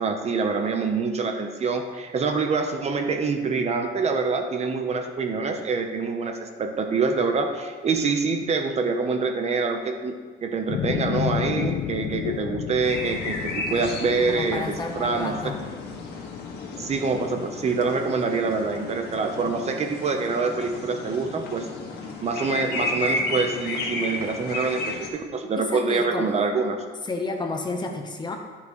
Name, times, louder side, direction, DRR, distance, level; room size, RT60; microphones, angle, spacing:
voice 1, 0.0-10.2 10.4-15.4 16.8-21.7 22.2-26.8, right 4 dB, 40° right, 5 dB, 0.9 m, -25 dB
sound 1, 10.7-17.3, left 10 dB, 45° left, 0.4 m, -32 dB
sound 2, 12.8-25.1, left 2 dB, 70° left, 1.7 m, -33 dB
voice 2, 14.3-15.6 25.6-26.3 27.0-28.4, left 3 dB, 25° left, 3 dB, 1.1 m, -31 dB
12.5 x 5.7 x 3.2 m, 1.5 s
cardioid pair, 110°, 17 cm